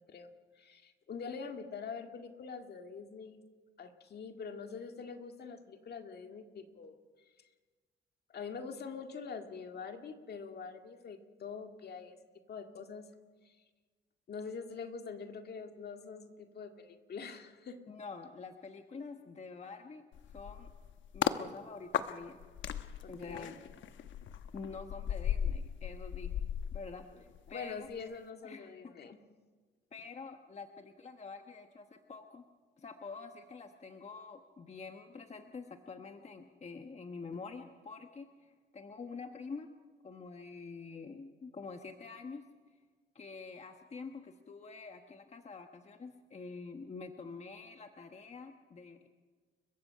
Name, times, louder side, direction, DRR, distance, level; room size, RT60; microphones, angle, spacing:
voice 1, 0.1-3.4 3.8-7.0 8.3-12.2 12.5-13.1 13.5-13.6 14.3-17.8 23.0-23.6 27.1-27.2 27.5-29.2, left 5 dB, 55° left, 5 dB, 2.0 m, -44 dB
voice 2, 17.9-20.0 20.3-20.7 21.1-22.4 23.1-23.6 24.5-26.3 26.7-27.9 28.4-29.1 29.9-32.4 32.8-39.7 40.0-42.4 43.1-49.1, left 4 dB, 35° left, 5 dB, 1.3 m, -47 dB
sound 1, 20.1-21.4 21.9-27.5 27.8-28.1, left 9 dB, 75° left, 1.1 m, -37 dB
30.0 x 15.5 x 5.7 m, 1.4 s
cardioid pair, 90°, 20 cm